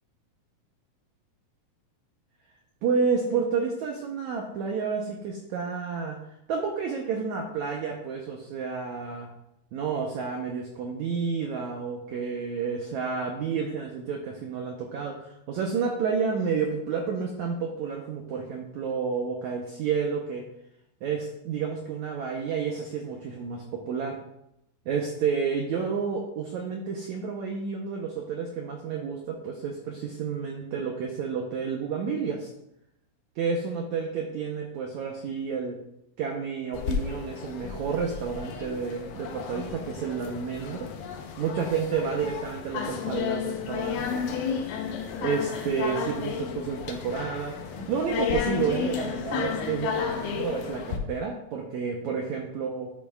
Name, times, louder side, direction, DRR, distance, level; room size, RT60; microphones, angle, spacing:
voice 1, 2.8-6.2 6.5-9.3 9.7-20.4 21.0-24.2 24.8-32.5 33.4-35.8 36.2-40.9 41.4-44.2 45.2-47.6 47.9-52.9, right 5 dB, 85° right, 0 dB, 1.6 m, -30 dB
sound 1, 36.7-51.0, left 7 dB, 75° left, 2.3 m, -32 dB
11.5 x 6.6 x 2.4 m, 0.79 s
omnidirectional pair, 4.5 m